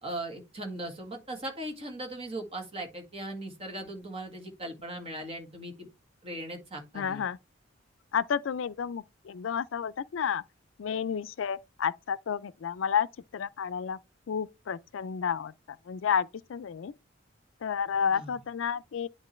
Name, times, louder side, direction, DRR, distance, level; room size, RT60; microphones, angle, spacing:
voice 1, 0.0-5.9 6.2-7.3 18.1-18.3, right 1 dB, 30° right, 1.8 m, -39 dB
voice 2, 6.9-7.4 8.1-10.4 10.8-13.1 13.3-14.0 14.3-15.5 15.9-16.9 17.6-19.1, left 7 dB, 75° left, 0.4 m, -31 dB
10.5 x 3.8 x 3.1 m
head